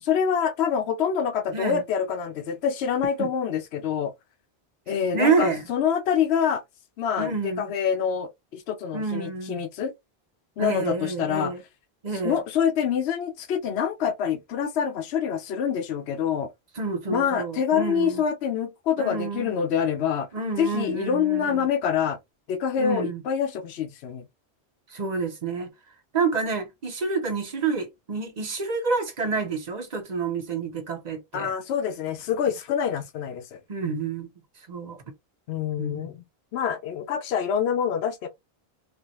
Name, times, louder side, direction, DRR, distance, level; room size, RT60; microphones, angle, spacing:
voice 1, 0.0-4.1 4.9-6.6 7.0-9.9 10.6-11.5 12.2-16.5 17.1-20.3 20.6-22.2 22.5-24.2 31.3-33.6 35.5-36.2 36.5-38.3, left 7 dB, 85° left, 0.9 m, -26 dB
voice 2, 5.1-5.6 7.2-7.7 8.9-9.6 10.6-11.6 12.0-12.4 16.8-18.2 19.0-19.5 20.3-21.7 22.8-23.2 24.9-25.7 26.1-31.5 33.7-34.3 34.7-35.0 35.8-36.0, right 4 dB, 45° right, 0.9 m, -28 dB
3.3 x 2.1 x 2.9 m
omnidirectional pair, 1.1 m